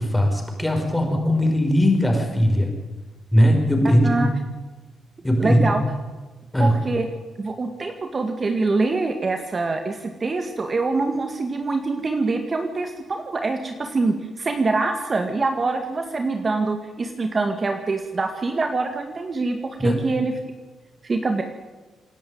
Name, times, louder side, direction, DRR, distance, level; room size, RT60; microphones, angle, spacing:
voice 1, 0.0-2.7 3.3-4.2 5.2-5.8 6.5-6.7 19.8-20.0, equal, 10° left, 3 dB, 5.6 m, -19 dB
voice 2, 5.4-5.8 6.6-7.1 7.4-20.3 21.0-21.4, right 3 dB, 35° right, 5 dB, 2.1 m, -24 dB
27.0 x 10.5 x 9.5 m, 1.2 s
cardioid pair, 90°, 0 cm